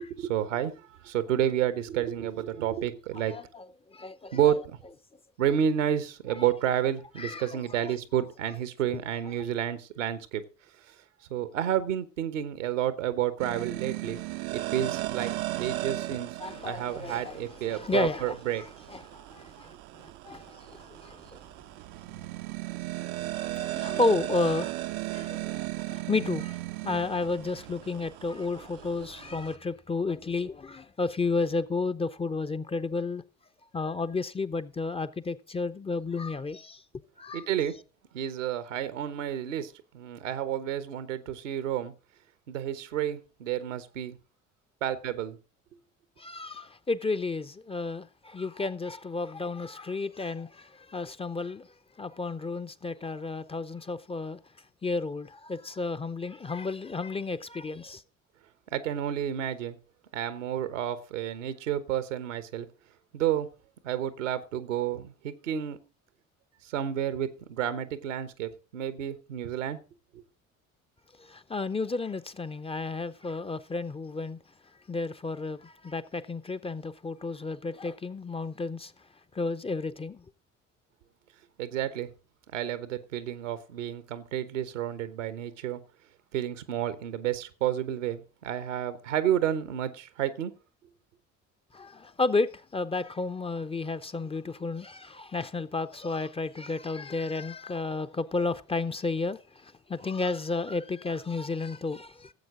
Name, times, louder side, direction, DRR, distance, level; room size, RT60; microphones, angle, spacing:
voice 1, 0.0-3.3 4.3-4.8 5.4-10.4 11.3-14.2 14.5-15.3 15.6-16.3 16.6-18.6 37.3-37.7 38.1-41.9 42.5-44.2 44.8-45.4 58.7-59.8 60.1-62.7 63.1-63.5 63.8-65.8 66.7-69.8 70.1-70.2 81.6-82.1 82.5-85.8 86.3-90.5, right 10 dB, 75° right, 1.1 m, -30 dB
voice 2, 3.1-4.5 7.2-7.9 16.4-19.8 20.2-21.4 23.3-33.2 33.7-36.8 37.2-37.5 46.2-51.7 52.0-54.4 54.8-58.0 71.2-74.4 74.9-78.9 79.3-80.2 91.7-102.3, left 3 dB, 15° left, 0.6 m, -32 dB
sound 1, 13.4-29.6, right 17 dB, 55° right, 0.6 m, -37 dB
16.0 x 7.8 x 3.7 m
figure-of-eight pair, 50°, 38 cm